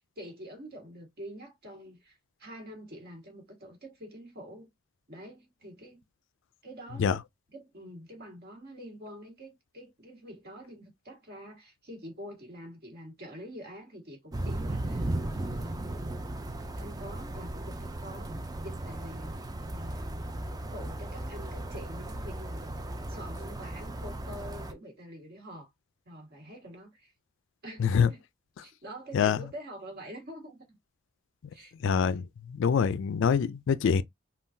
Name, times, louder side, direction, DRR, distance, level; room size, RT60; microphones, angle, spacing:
voice 1, 0.0-4.7 5.1-6.0 6.6-7.2 7.5-16.0 16.8-18.3 18.6-19.4 19.7-22.8 23.1-25.7 26.0-27.1 27.6-28.2 28.6-30.8 31.5-31.7, equal, 45° right, 1.6 m, -46 dB
sound 1, 14.3-24.7, right 1 dB, 20° right, 0.3 m, -36 dB
voice 2, 31.8-32.2 32.6-34.0, left 6 dB, 60° left, 0.3 m, -24 dB
3.7 x 2.3 x 2.6 m
head